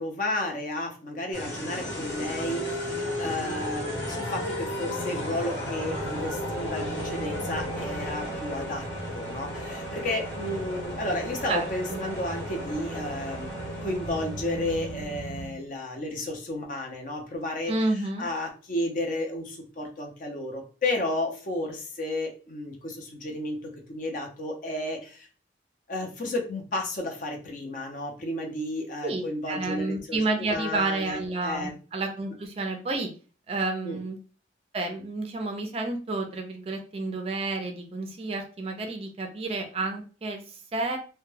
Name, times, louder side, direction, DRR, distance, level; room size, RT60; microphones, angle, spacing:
voice 1, 0.0-8.9 9.1-17.7 18.2-25.3 25.9-31.2 31.4-31.8 33.8-34.0, left 1 dB, 45° left, 2 dB, 0.6 m, -32 dB
sound 1, 1.3-15.6, equal, 80° left, 1.1 m, -34 dB
voice 2, 11.5-12.0 17.7-18.3 29.0-33.1 33.5-34.2 34.7-41.0, right 2 dB, 30° right, 4 dB, 0.3 m, -30 dB
2.2 x 2.1 x 3.1 m, 0.37 s
head